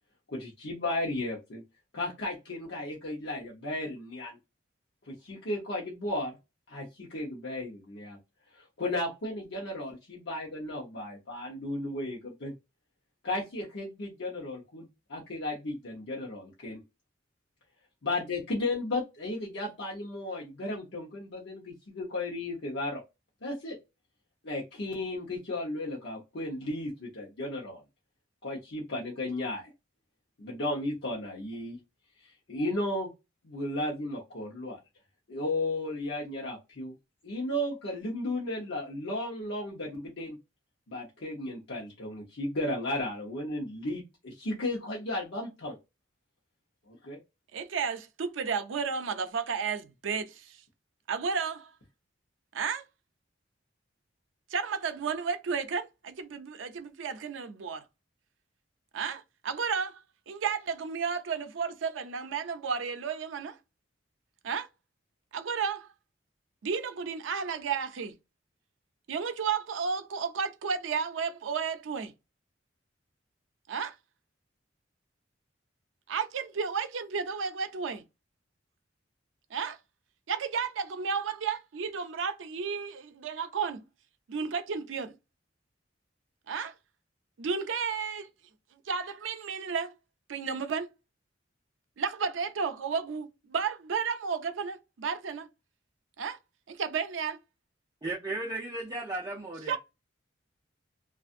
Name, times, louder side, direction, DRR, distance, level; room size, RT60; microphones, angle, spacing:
voice 1, 0.3-1.6 1.9-4.4 5.1-6.3 6.7-8.2 8.5-12.5 13.2-16.8 18.0-23.0 23.4-23.7 24.4-27.8 28.4-29.7 30.4-31.8 32.2-33.1 33.4-34.8 35.3-36.9 37.2-40.4 40.9-45.8 46.9-47.2, left 1 dB, 65° left, 0.8 m, -34 dB
voice 2, 47.5-50.6 51.1-51.7 52.5-52.8 54.5-57.8 58.9-63.6 64.4-64.7 65.3-65.9 66.6-68.1 69.1-72.1 73.7-74.0 76.1-78.0 79.5-79.8 80.3-83.8 84.3-85.1 86.5-86.7 87.4-88.3 88.9-89.9 90.3-90.9 92.0-95.5 96.2-96.4 96.7-97.4 99.7-99.8, right 6 dB, 90° right, 0.5 m, -32 dB
voice 3, 98.0-99.8, right 2 dB, 20° right, 0.5 m, -35 dB
2.6 x 2.4 x 2.4 m
head